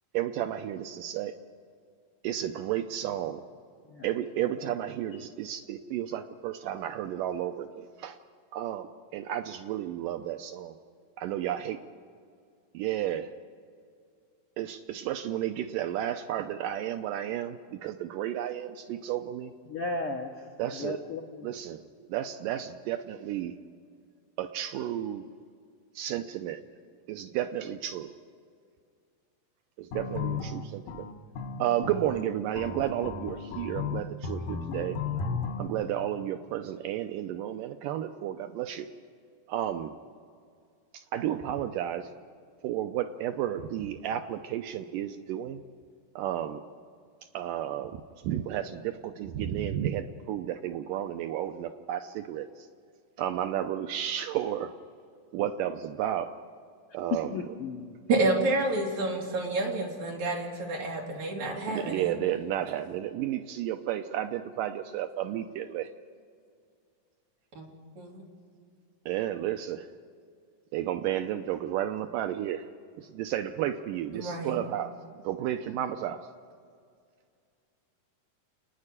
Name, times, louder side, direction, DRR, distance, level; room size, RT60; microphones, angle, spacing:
voice 1, 0.1-1.3 2.2-3.4 4.0-8.2 8.5-10.8 11.2-11.8 12.8-13.3 14.6-19.5 20.6-21.0 21.4-21.8 22.1-23.5 24.4-25.3 26.0-26.6 27.1-28.1 29.8-31.1 31.6-35.0 35.6-38.9 39.5-39.9 40.9-42.1 42.6-45.6 46.2-46.6 47.3-52.7 53.2-54.7 55.3-56.3 56.9-57.3 61.7-65.9 69.1-69.9 70.7-72.6 73.0-74.9 75.2-76.3, right 11 dB, 80° right, 8 dB, 2.2 m, -32 dB
voice 2, 19.7-20.4 20.7-21.5 34.7-35.4 35.6-35.7 57.1-58.0, left 4 dB, 60° left, 1 dB, 1.5 m, -36 dB
sound 1, 29.9-35.7, left 5 dB, 85° left, 2.7 m, -34 dB
voice 3, 58.1-62.1 67.6-67.7 68.0-68.2 74.1-74.5, right 2 dB, 55° right, -1 dB, 4.1 m, -29 dB
29.0 x 9.8 x 9.8 m, 2.2 s
omnidirectional pair, 4.0 m